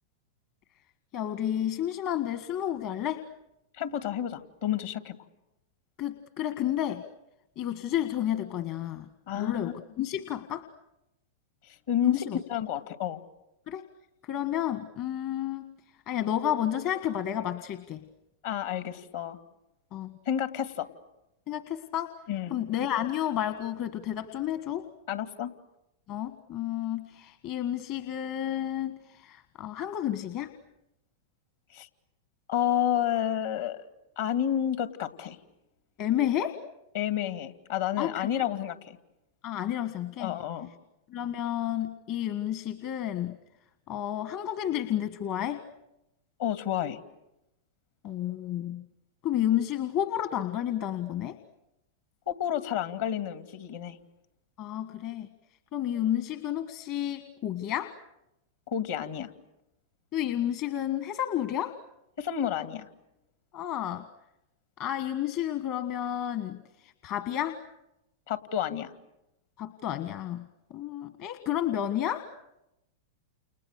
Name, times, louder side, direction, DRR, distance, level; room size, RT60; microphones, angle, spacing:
voice 1, 1.1-3.2 6.0-7.0 7.6-9.1 9.3-10.6 12.0-12.4 13.7-13.9 14.2-15.7 16.1-18.0 19.9-20.1 21.5-22.1 22.5-24.9 26.1-30.5 36.0-36.6 38.0-38.4 39.4-40.4 41.1-43.4 43.9-45.6 48.0-48.8 49.2-51.4 54.6-55.3 55.7-57.9 60.1-61.7 63.5-64.1 64.8-67.6 69.6-72.3, left 11 dB, 50° left, 10 dB, 1.5 m, -31 dB
voice 2, 3.8-5.2 9.3-9.7 11.9-13.2 18.4-19.4 20.3-20.9 22.3-22.6 25.1-25.5 31.7-31.9 32.5-33.8 34.2-35.4 36.9-39.0 40.2-40.7 46.4-47.0 52.3-54.0 58.7-59.3 62.2-62.9 68.3-68.9, left 10 dB, 65° left, 9 dB, 2.4 m, -30 dB
29.5 x 29.5 x 6.7 m, 0.90 s
hypercardioid pair, 105°, 0 cm